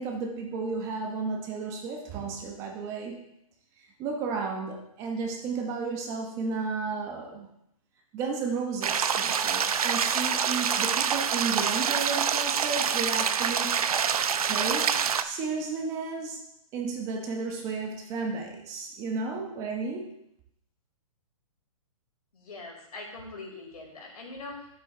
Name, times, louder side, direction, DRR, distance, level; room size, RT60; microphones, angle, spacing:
voice 1, 0.0-3.2 4.0-7.5 8.1-13.8 14.4-16.4 16.7-20.2, right 4 dB, 15° right, 3 dB, 0.9 m, -33 dB
sound 1, 8.8-15.2, right 7 dB, 75° right, 0.8 m, -26 dB
voice 2, 22.3-24.7, left 3 dB, 90° left, -1 dB, 4.4 m, -42 dB
10.5 x 7.6 x 3.8 m, 0.77 s
hypercardioid pair, 170°, 19 cm